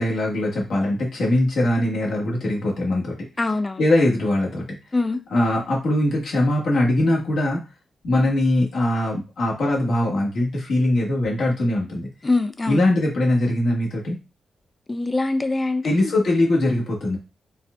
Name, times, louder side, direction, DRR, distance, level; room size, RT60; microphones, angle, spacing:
voice 1, 0.0-3.2 3.8-4.6 5.3-7.6 8.0-12.1 12.7-14.2 15.8-17.2, left 1 dB, 75° left, 1.3 m, -21 dB
voice 2, 3.4-3.8 4.9-5.2 12.2-12.8 14.9-16.1, left 2 dB, 25° left, 0.4 m, -23 dB
4.1 x 2.5 x 2.2 m
cardioid pair, 85°, 0 cm